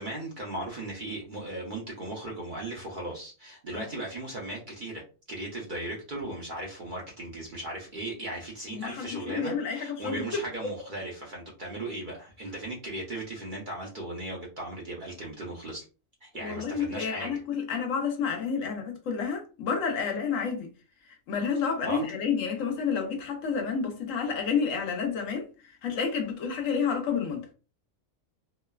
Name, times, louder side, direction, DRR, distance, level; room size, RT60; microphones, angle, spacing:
voice 1, 0.0-5.0 5.3-15.9 16.2-17.4 21.8-22.1, right 1 dB, 50° right, 0.7 m, -37 dB
voice 2, 8.7-10.7 16.3-20.7 21.3-27.5, left 6 dB, 75° left, 1.0 m, -30 dB
3.0 x 2.0 x 2.2 m
omnidirectional pair, 1.4 m